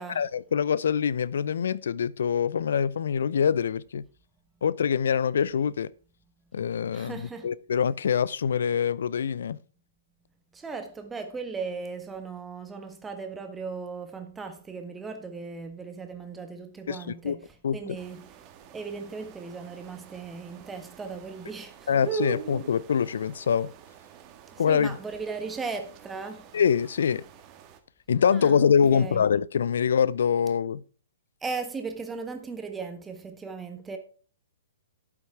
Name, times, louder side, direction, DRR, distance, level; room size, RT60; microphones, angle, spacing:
voice 1, 0.1-4.0 4.6-5.9 6.5-9.6 16.9-17.0 17.2-17.4 17.6-17.8 21.9-23.7 24.6-25.0 26.5-27.2 28.1-30.8, left 7 dB, 65° left, 0.5 m, -24 dB
voice 2, 6.9-7.5 10.5-18.4 18.7-22.0 24.5-26.5 28.3-29.2 31.4-34.0, right 4 dB, 10° right, 1.5 m, -37 dB
sound 1, 17.9-27.8, right 6 dB, 30° right, 1.7 m, -42 dB
12.0 x 8.5 x 3.5 m
figure-of-eight pair, 120°, 0 cm